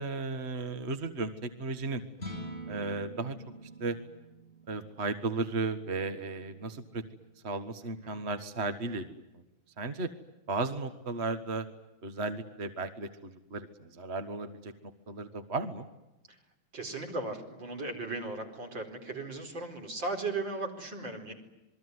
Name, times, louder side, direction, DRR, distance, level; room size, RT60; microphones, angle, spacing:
voice 1, 0.0-2.0 2.7-3.3 3.8-4.0 4.7-7.0 7.4-9.1 9.8-10.1 10.5-11.7 12.0-14.7 15.1-15.9, right 3 dB, 35° right, 8 dB, 1.6 m, -34 dB
sound 1, 2.1-8.5, right 1 dB, 25° left, 8.2 m, -47 dB
voice 2, 7.8-8.2 16.3-16.4 16.7-21.3, right 3 dB, 65° right, 2 dB, 5.3 m, -37 dB
27.5 x 22.0 x 9.6 m, 0.97 s
omnidirectional pair, 2.2 m